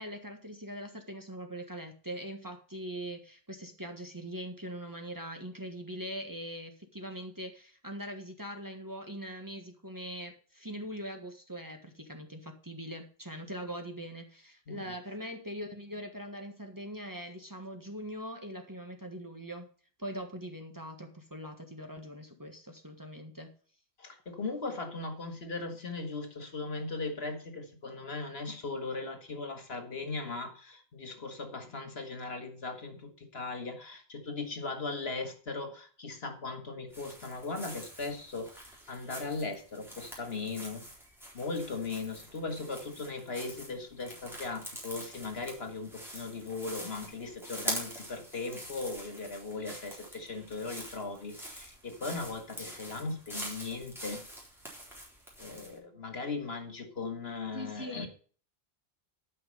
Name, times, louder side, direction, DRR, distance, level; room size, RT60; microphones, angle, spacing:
voice 1, 0.0-19.7 20.0-23.5 57.5-58.1, equal, 20° right, 1.6 m, -42 dB
voice 2, 24.0-40.9 41.3-54.2 55.4-58.1, left 3 dB, 70° left, 2.1 m, -38 dB
sound 1, 36.9-55.8, equal, ahead, 4.0 m, -45 dB
12.0 x 5.8 x 5.4 m
omnidirectional pair, 1.1 m